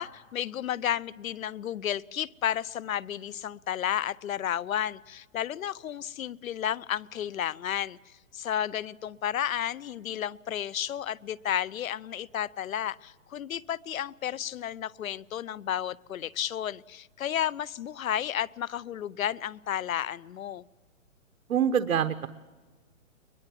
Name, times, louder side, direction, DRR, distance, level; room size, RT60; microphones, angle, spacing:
voice 1, 0.0-20.6, left 10 dB, 80° left, 21 dB, 0.8 m, -32 dB
voice 2, 21.5-22.3, right 8 dB, 80° right, 9 dB, 1.1 m, -25 dB
22.5 x 22.0 x 7.6 m, 1.4 s
hypercardioid pair, 170°, 41 cm